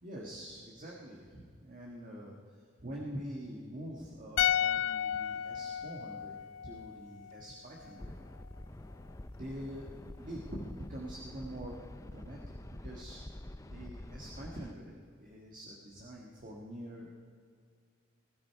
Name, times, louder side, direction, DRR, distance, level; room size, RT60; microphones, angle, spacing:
voice 1, 0.0-6.4 6.6-8.1 9.4-13.2 13.7-14.9 15.2-17.1, equal, 45° right, -2 dB, 1.8 m, -45 dB
sound 1, 4.4-7.6 7.8-8.0, left 10 dB, 85° left, 0.4 m, -33 dB
sound 2, 8.0-14.7, left 1 dB, 15° left, 0.5 m, -47 dB
20.5 x 13.0 x 4.7 m, 2.1 s
head